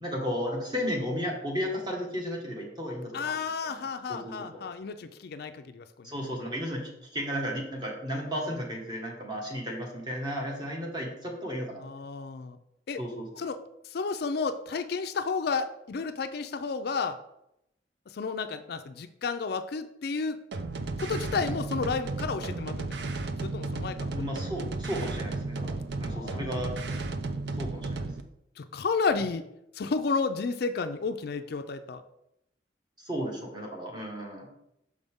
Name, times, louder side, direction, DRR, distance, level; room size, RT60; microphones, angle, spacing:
voice 1, 0.0-3.3 3.7-3.8 4.1-4.3 6.0-11.9 13.0-13.2 24.1-26.7 27.6-28.1 33.0-34.5, equal, 25° right, 0 dB, 1.5 m, -34 dB
voice 2, 3.1-6.1 11.8-12.6 12.9-13.0 13.4-13.6 13.9-17.2 18.1-20.4 21.0-23.1 23.4-24.2 26.1-26.7 28.6-29.4 29.7-32.0, left 4 dB, 55° left, 9 dB, 0.4 m, -32 dB
sound 1, 20.5-28.2, right 3 dB, 65° right, 0.5 m, -34 dB
6.3 x 5.3 x 3.6 m, 0.81 s
head